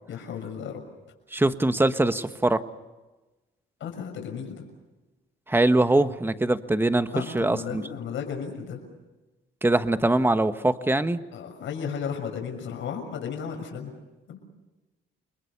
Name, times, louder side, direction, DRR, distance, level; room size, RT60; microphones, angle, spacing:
voice 1, 0.1-0.8 3.8-4.6 7.1-8.8 11.3-13.9 14.3-14.4, left 7 dB, 75° left, 3 dB, 6.3 m, -34 dB
voice 2, 1.3-2.6 5.5-7.8 9.6-11.2, right 2 dB, 10° right, 10 dB, 1.4 m, -22 dB
29.5 x 22.0 x 6.9 m, 1.1 s
cardioid pair, 90°, 20 cm